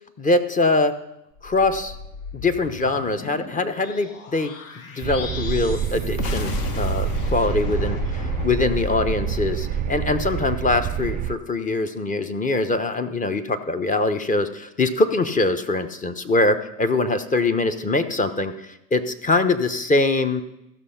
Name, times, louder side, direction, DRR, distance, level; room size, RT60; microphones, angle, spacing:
voice 1, 0.2-0.9 1.4-2.0 2.3-4.5 4.9-18.5 18.9-20.4, left 2 dB, 20° left, 9 dB, 0.9 m, -23 dB
sound 1, 1.3-7.1, left 4 dB, 70° left, 1.8 m, -40 dB
sound 2, 5.0-11.4, right 10 dB, 25° right, 0.3 m, -27 dB
sound 3, 6.0-10.6, left 6 dB, 50° left, 1.3 m, -31 dB
14.5 x 6.3 x 5.7 m, 0.87 s
supercardioid pair, 105°, 43 cm